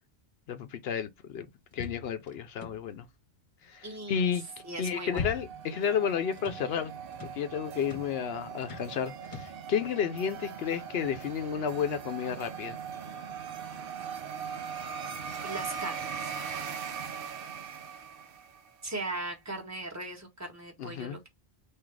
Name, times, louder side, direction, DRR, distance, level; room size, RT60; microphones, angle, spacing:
voice 1, 0.5-1.5 1.7-3.0 3.7-4.4 4.8-6.9 7.3-12.8 20.8-21.2, left 7 dB, 75° left, 0.8 m, -32 dB
sound 1, 1.7-3.1 4.6-5.8 6.0-6.7 7.1-7.4 7.8-8.2 8.6-9.0 9.2-9.6, left 5 dB, 40° left, 1.2 m, -41 dB
voice 2, 3.8-4.3 4.6-5.3 15.4-16.3 18.8-21.3, right 2 dB, 15° right, 1.5 m, -38 dB
sound 2, 4.2-18.8, right 6 dB, 65° right, 0.8 m, -40 dB
3.9 x 2.7 x 4.6 m
omnidirectional pair, 1.0 m